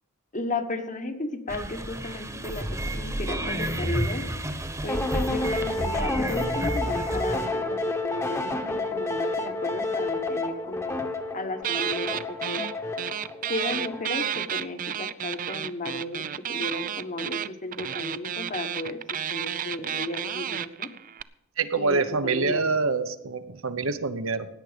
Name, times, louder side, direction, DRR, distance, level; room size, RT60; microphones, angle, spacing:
voice 1, 0.3-4.2 4.8-11.0 11.3-12.6 13.5-20.9 21.7-22.6, left 2 dB, 40° left, 7 dB, 1.3 m, -34 dB
sound 1, 1.5-7.5, right 1 dB, 15° right, 1.2 m, -31 dB
sound 2, 4.9-14.3, left 2 dB, 15° left, 1.1 m, -30 dB
sound 3, 11.6-12.7 13.0-21.2, right 9 dB, 40° right, 0.4 m, -31 dB
voice 2, 21.6-24.5, right 4 dB, 70° right, 10 dB, 1.0 m, -26 dB
16.5 x 9.9 x 5.2 m, 0.86 s
head